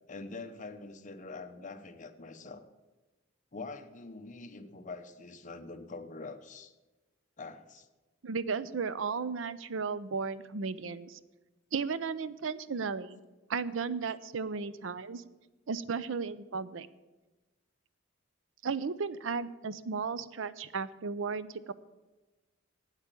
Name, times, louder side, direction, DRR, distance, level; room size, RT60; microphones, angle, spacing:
voice 1, 0.0-2.6 3.5-6.7 7.4-7.9, left 3 dB, 40° left, 8 dB, 0.9 m, -44 dB
voice 2, 8.2-11.2 11.7-13.2 13.5-15.2 15.7-16.9 18.6-21.7, right 5 dB, 70° right, 16 dB, 0.6 m, -35 dB
9.0 x 8.1 x 9.1 m, 1.1 s
head